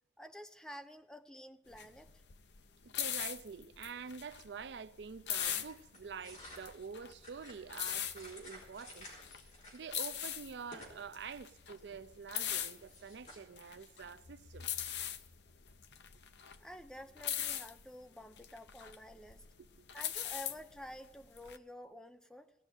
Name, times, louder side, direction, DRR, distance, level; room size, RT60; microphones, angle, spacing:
voice 1, 0.2-2.1 16.6-19.4 19.9-22.5, left 1 dB, 5° left, 0.5 m, -50 dB
sound 1, 1.7-21.6, left 10 dB, 75° left, 0.7 m, -41 dB
voice 2, 2.8-9.1 9.7-14.7 19.8-19.9, right 5 dB, 75° right, 0.5 m, -47 dB
sound 2, 5.4-9.9 10.1-11.0 11.3-13.4, left 1 dB, 45° left, 4.0 m, -54 dB
17.0 x 6.3 x 9.1 m
head